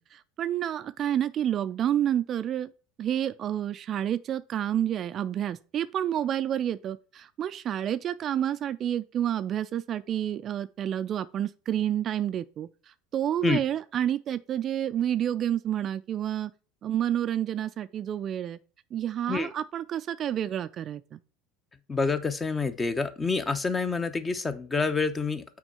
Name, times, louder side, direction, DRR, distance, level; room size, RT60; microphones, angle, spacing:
voice 1, 0.1-2.7 3.0-16.5 16.8-18.6 18.9-21.2, right 10 dB, 45° right, 0.4 m, -29 dB
voice 2, 21.9-25.4, left 4 dB, 20° left, 0.9 m, -27 dB
6.1 x 4.5 x 5.6 m
hypercardioid pair, 85°, 0 cm